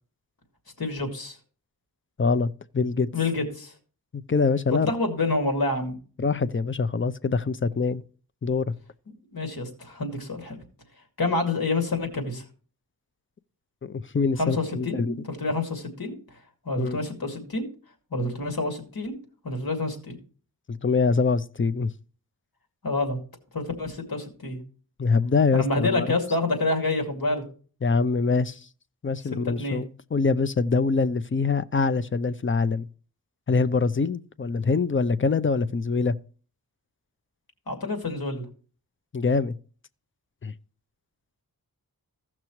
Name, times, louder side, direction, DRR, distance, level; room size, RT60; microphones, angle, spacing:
voice 1, 0.8-1.4 3.1-3.7 4.7-5.9 9.3-10.6 11.2-12.4 14.4-16.4 16.6-17.6 18.1-19.1 19.4-20.2 22.8-23.2 23.5-24.6 25.5-27.4 29.4-29.8 37.7-38.5, left 2 dB, 80° left, 2.3 m, -28 dB
voice 2, 2.2-3.1 4.3-4.9 6.2-8.0 8.4-8.7 13.8-15.1 16.8-17.0 20.7-21.9 25.0-26.2 27.8-28.7 29.0-32.9 33.5-36.2 39.1-39.6 40.4-40.5, left 4 dB, 35° left, 0.6 m, -24 dB
16.0 x 6.0 x 3.1 m
wide cardioid pair, 60°, 36 cm